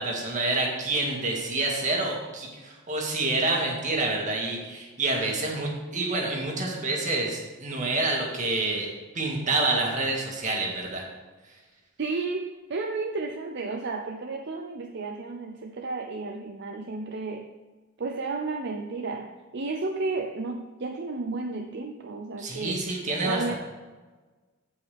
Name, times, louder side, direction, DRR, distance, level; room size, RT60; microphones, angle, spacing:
voice 1, 0.0-8.9 9.1-11.0 22.4-23.5, right 2 dB, 40° right, -1 dB, 2.1 m, -28 dB
voice 2, 12.0-17.5 18.0-22.8 23.2-23.5, right 3 dB, 55° right, 3 dB, 0.6 m, -32 dB
15.5 x 5.6 x 3.5 m, 1.3 s
head